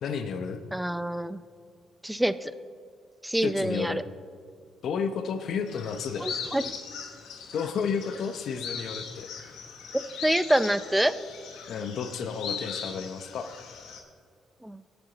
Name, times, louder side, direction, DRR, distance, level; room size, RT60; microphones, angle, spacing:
voice 1, 0.0-0.6 3.4-4.0 4.8-6.3 7.5-9.3 11.7-13.5, left 6 dB, 65° left, 8 dB, 0.7 m, -32 dB
voice 2, 0.7-1.4 2.0-2.5 3.2-4.0 6.2-6.6 10.2-11.1 14.6-14.8, right 1 dB, 5° right, 13 dB, 0.5 m, -26 dB
sound 1, 5.7-14.0, left 6 dB, 85° left, 1.2 m, -39 dB
17.5 x 7.0 x 4.0 m, 2.1 s
cardioid pair, 90°, 0 cm